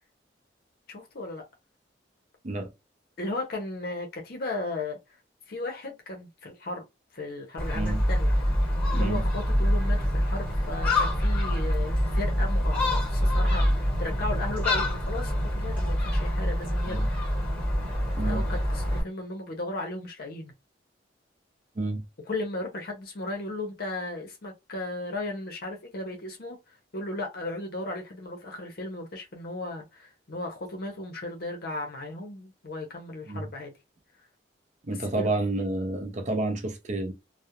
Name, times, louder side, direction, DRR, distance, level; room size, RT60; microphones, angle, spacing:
voice 1, 0.9-1.4 3.2-5.2 5.5-6.8 7.1-8.3 8.9-17.0 18.2-20.5 22.3-33.7 34.9-35.3, left 2 dB, 55° left, 0.6 m, -36 dB
Gull seagull, 7.6-19.0, equal, 10° left, 1.2 m, -25 dB
voice 2, 34.8-37.1, right 2 dB, 40° right, 0.5 m, -30 dB
2.3 x 2.0 x 2.8 m
head